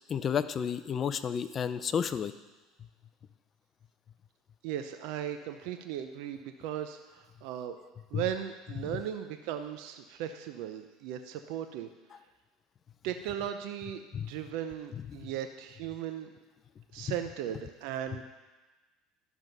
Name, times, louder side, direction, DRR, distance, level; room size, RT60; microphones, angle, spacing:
voice 1, 0.1-2.3 8.1-8.2 14.1-14.3 17.0-17.1, left 7 dB, 35° left, 12 dB, 0.5 m, -31 dB
voice 2, 4.6-7.8 8.1-11.9 13.0-16.3 16.9-18.3, right 10 dB, 70° right, 7 dB, 0.6 m, -37 dB
11.0 x 6.2 x 5.3 m, 1.2 s
supercardioid pair, 120°, 0 cm